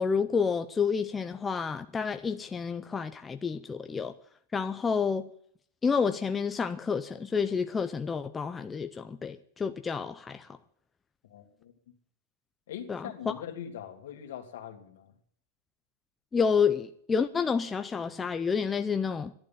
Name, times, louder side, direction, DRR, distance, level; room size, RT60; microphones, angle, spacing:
voice 1, 0.0-4.2 4.5-5.3 5.8-10.5 12.9-13.3 16.3-19.3, left 6 dB, 10° left, 0.5 m, -29 dB
voice 2, 11.2-11.7 12.7-15.1, left 9 dB, 70° left, 2.4 m, -42 dB
12.5 x 11.0 x 7.3 m
supercardioid pair, 155°, 0 cm